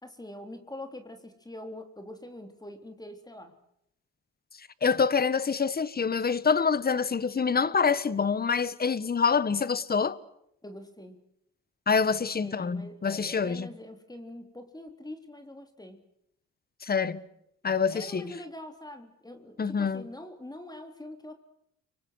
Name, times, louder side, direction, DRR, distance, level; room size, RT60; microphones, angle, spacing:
voice 1, 0.0-3.5 10.6-11.2 12.1-16.0 17.9-21.3, left 1 dB, 15° left, 3.6 m, -44 dB
voice 2, 4.8-10.2 11.9-13.7 16.8-17.2 17.6-18.3 19.6-20.0, left 5 dB, 30° left, 1.5 m, -26 dB
30.0 x 25.0 x 6.5 m
cardioid pair, 90°, 30 cm